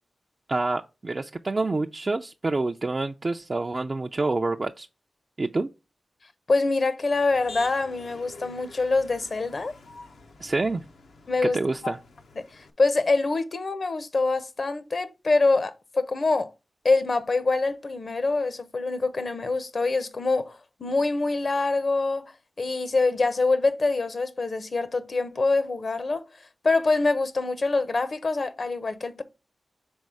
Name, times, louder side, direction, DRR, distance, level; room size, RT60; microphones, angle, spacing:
voice 1, 0.5-4.9 5.4-5.7 10.4-10.8 11.5-12.0, right 3 dB, 40° right, 0.4 m, -27 dB
voice 2, 6.5-9.7 11.3-11.9 12.4-16.5 16.8-22.3 22.6-26.2 26.6-29.2, left 3 dB, 55° left, 0.7 m, -25 dB
Motor vehicle (road), 7.1-12.7, left 3 dB, 85° left, 0.8 m, -47 dB
5.3 x 3.8 x 4.8 m
cardioid pair, 60°, 0 cm